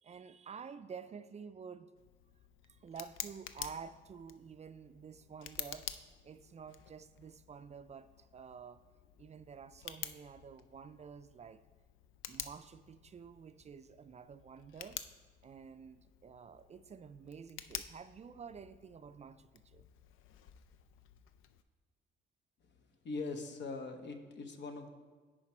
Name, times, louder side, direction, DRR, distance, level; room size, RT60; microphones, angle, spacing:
voice 1, 0.0-1.9 2.7-5.9 6.2-8.8 9.2-11.6 12.3-15.0 15.4-19.8, right 6 dB, 35° right, 0.3 m, -50 dB
Tick, 2.0-21.6, left 10 dB, 90° left, 0.5 m, -50 dB
voice 2, 22.6-24.9, left 3 dB, 65° left, 1.0 m, -42 dB
10.0 x 4.9 x 4.3 m
cardioid pair, 90°, 20 cm